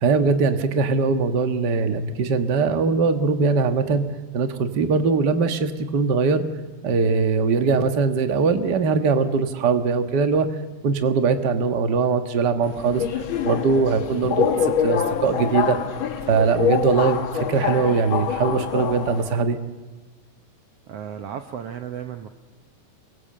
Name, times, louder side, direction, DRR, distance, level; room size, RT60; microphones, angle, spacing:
voice 1, 0.0-4.0 4.3-6.4 6.8-10.5 10.8-13.0 13.4-15.8 16.3-19.6, right 4 dB, 55° right, 7 dB, 1.2 m, -21 dB
Subway metro underground, 12.6-19.4, left 7 dB, 85° left, 1.1 m, -25 dB
voice 2, 20.9-22.3, right 8 dB, 85° right, 7 dB, 1.3 m, -34 dB
28.5 x 23.5 x 7.7 m, 1.2 s
omnidirectional pair, 4.2 m